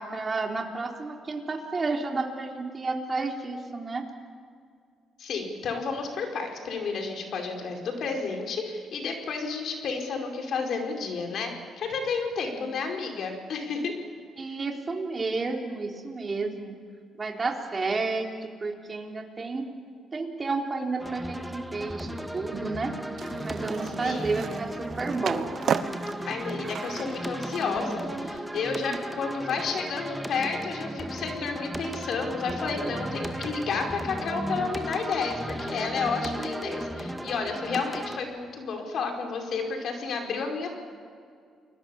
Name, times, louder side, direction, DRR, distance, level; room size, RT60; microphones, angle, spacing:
voice 1, 0.0-4.0 12.5-12.7 14.4-16.7 17.1-19.7 20.1-22.9 23.4-25.5 28.9-29.0, right 3 dB, 30° right, 2 dB, 3.8 m, -31 dB
voice 2, 5.2-11.5 11.8-13.9 24.0-24.3 26.3-40.7, left 4 dB, 65° left, 3 dB, 4.9 m, -31 dB
sound 1, 21.0-38.2, right 1 dB, 5° right, 1.9 m, -35 dB
Skateboard, 23.1-28.4, right 8 dB, 60° right, 1.1 m, -35 dB
29.5 x 21.0 x 7.2 m, 2.2 s
cardioid pair, 90°, 0 cm